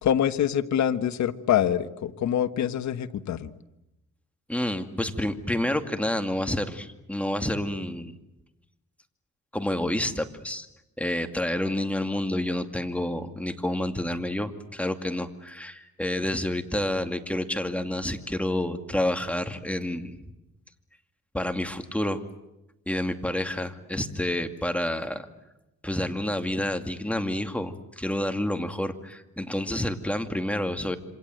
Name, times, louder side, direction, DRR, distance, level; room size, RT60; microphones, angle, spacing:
voice 1, 0.0-3.5, left 10 dB, 65° left, 10 dB, 1.5 m, -25 dB
voice 2, 4.5-8.1 9.5-10.7 11.0-20.2 21.3-22.2 22.9-25.3 25.8-31.0, left 1 dB, 5° left, 6 dB, 2.5 m, -29 dB
27.5 x 26.0 x 7.9 m, 0.93 s
cardioid pair, 90°, 30 cm